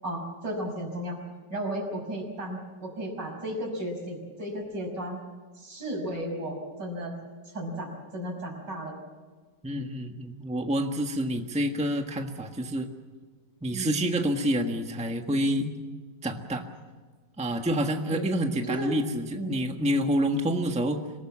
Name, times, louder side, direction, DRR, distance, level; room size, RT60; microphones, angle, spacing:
voice 1, 0.0-1.2 1.5-5.2 5.5-7.2 7.4-9.0 13.7-14.0 18.1-18.3 18.6-19.0 19.4-19.7, equal, 75° right, 1 dB, 6.3 m, -34 dB
voice 2, 9.6-12.9 13.6-15.7 16.2-16.7 17.4-21.0, equal, 5° right, 4 dB, 1.3 m, -28 dB
26.5 x 18.5 x 7.4 m, 1.4 s
omnidirectional pair, 1.9 m